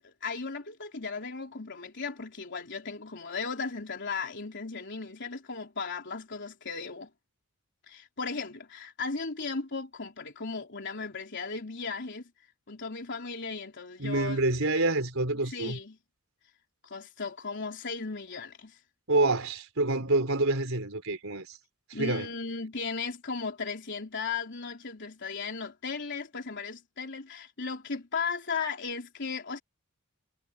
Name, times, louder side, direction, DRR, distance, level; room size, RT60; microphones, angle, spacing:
voice 1, 0.0-7.1 7.9-12.3 12.7-14.4 15.4-16.0 16.8-18.8 21.9-29.6, left 4 dB, 60° left, 3.7 m, -36 dB
voice 2, 14.0-15.8 19.1-21.6 21.9-22.3, right 2 dB, 70° right, 4.5 m, -27 dB
head